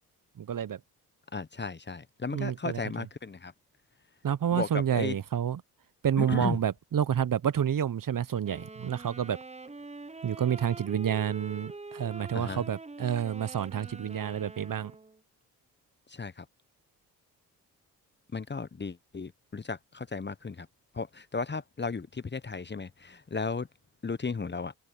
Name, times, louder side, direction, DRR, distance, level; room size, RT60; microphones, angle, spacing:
voice 1, 0.4-0.8 2.3-2.8 4.2-5.6 6.0-9.4 10.2-14.9, right 9 dB, 45° right, 1.3 m, -29 dB
voice 2, 1.3-3.5 4.5-5.2 6.2-6.6 12.3-12.6 16.1-16.4 18.3-20.7 20.9-23.7 24.0-24.7, left 4 dB, 25° left, 1.2 m, -35 dB
sound 1, 8.4-15.2, right 3 dB, 15° right, 1.1 m, -45 dB
open air
hypercardioid pair, 45°, 45 cm